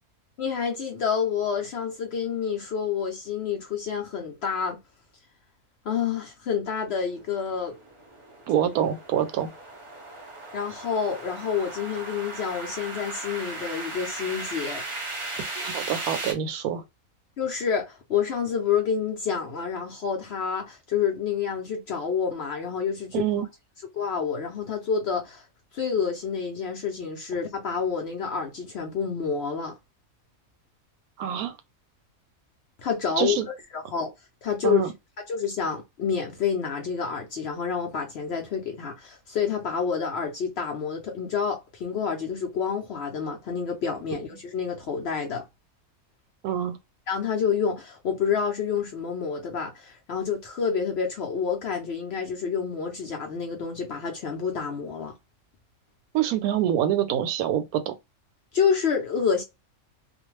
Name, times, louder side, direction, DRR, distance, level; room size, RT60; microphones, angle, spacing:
voice 1, 0.4-4.8 5.9-7.8 10.5-14.8 17.4-23.2 23.9-25.4 25.7-29.7 32.8-33.4 33.7-34.1 34.4-34.8 35.3-45.4 47.1-55.1 58.5-59.4, left 6 dB, 65° left, 0.7 m, -28 dB
sound 1, 7.2-16.3, right 2 dB, 35° right, 0.5 m, -37 dB
voice 2, 8.5-9.5 15.6-16.8 23.1-23.5 31.2-31.5 33.2-33.5 34.6-34.9 46.4-46.8 56.1-57.9, right 10 dB, 80° right, 1.0 m, -26 dB
2.4 x 2.1 x 3.0 m
omnidirectional pair, 1.5 m